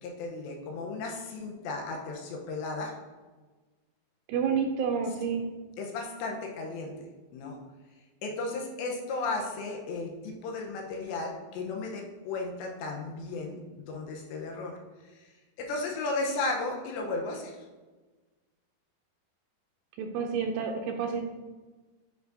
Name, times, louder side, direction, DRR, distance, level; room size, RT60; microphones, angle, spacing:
voice 1, 0.0-2.9 5.8-7.1 7.3-7.6 8.2-13.6 13.9-14.8 15.6-17.5, left 3 dB, 80° left, 1 dB, 3.0 m, -34 dB
voice 2, 4.3-5.5 20.0-21.2, right 6 dB, 80° right, 3 dB, 2.5 m, -29 dB
8.7 x 5.3 x 2.6 m, 1.3 s
omnidirectional pair, 5.2 m